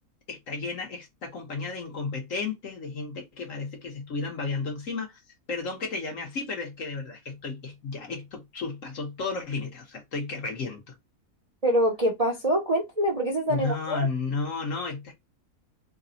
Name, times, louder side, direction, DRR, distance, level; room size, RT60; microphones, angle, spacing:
voice 1, 0.3-5.2 5.5-10.8 13.5-15.1, left 4 dB, 55° left, 1.4 m, -33 dB
voice 2, 11.6-14.1, right 1 dB, 30° right, 0.8 m, -25 dB
3.3 x 2.3 x 3.9 m
omnidirectional pair, 1.7 m